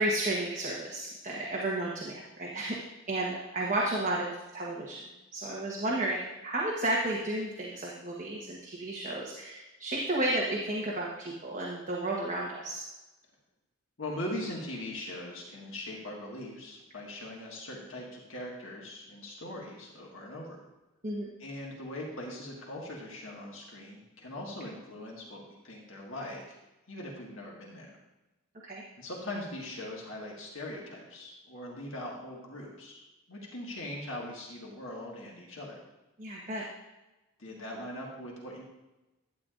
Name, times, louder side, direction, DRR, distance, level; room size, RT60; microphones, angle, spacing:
voice 1, 0.0-2.8 3.1-5.0 5.3-12.8 21.0-21.3 28.6-28.8 36.2-36.6, right 1 dB, 35° right, -4 dB, 1.2 m, -32 dB
voice 2, 14.0-20.6 21.4-26.6 26.9-27.9 29.0-33.0 33.3-35.8 37.4-38.6, left 1 dB, 65° left, -2 dB, 1.7 m, -41 dB
12.0 x 9.5 x 2.5 m, 1.0 s
head